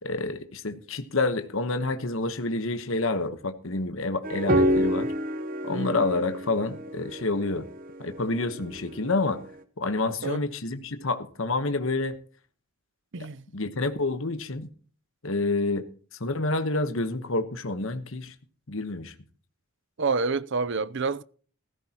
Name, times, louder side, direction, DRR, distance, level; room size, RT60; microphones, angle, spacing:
voice 1, 0.0-5.1 5.6-7.7 8.0-9.4 9.8-12.2 13.5-14.7 15.2-15.9 16.2-18.3 18.7-19.1, left 2 dB, 60° left, 1.2 m, -28 dB
sound 1, 4.2-9.2, equal, 40° right, 1.0 m, -28 dB
voice 2, 13.1-13.4 20.0-21.2, right 4 dB, 55° right, 0.6 m, -27 dB
16.5 x 15.0 x 2.9 m
head